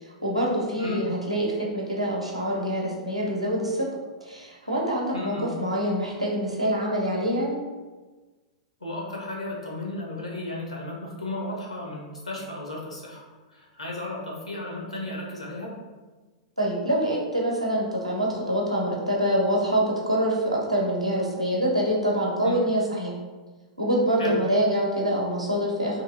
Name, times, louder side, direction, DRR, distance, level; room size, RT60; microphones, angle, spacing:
voice 1, 0.0-3.9 4.2-7.6 16.6-23.1 23.8-26.0, equal, 90° right, -3 dB, 0.7 m, -25 dB
voice 2, 5.1-5.5 8.8-15.8 22.4-22.6 24.2-24.4, left 2 dB, 85° left, -2 dB, 0.7 m, -34 dB
2.9 x 2.5 x 2.5 m, 1.3 s
figure-of-eight pair, 100°, 3 cm